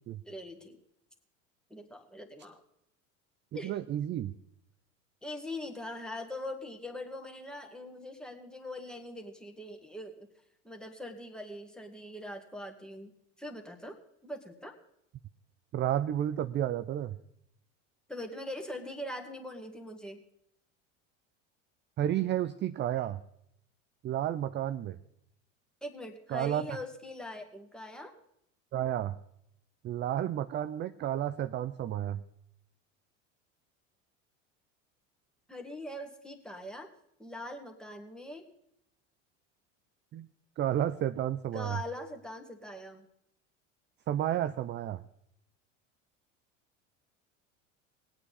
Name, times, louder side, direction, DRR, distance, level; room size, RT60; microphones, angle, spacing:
voice 1, 0.3-0.8 1.7-2.6 3.5-3.7 5.2-10.3 10.6-13.1 13.4-14.0 14.2-14.8 18.1-20.2 25.8-28.1 35.5-36.9 37.2-38.5 41.5-43.1, left 1 dB, ahead, 3 dB, 1.8 m, -42 dB
voice 2, 3.6-4.3 15.7-17.2 22.0-23.2 24.0-25.0 26.3-26.6 28.7-29.2 29.8-32.2 40.1-40.3 40.6-41.8 44.1-45.0, right 11 dB, 30° right, 12 dB, 0.4 m, -31 dB
19.0 x 8.7 x 4.1 m, 0.75 s
hypercardioid pair, 85°, 37 cm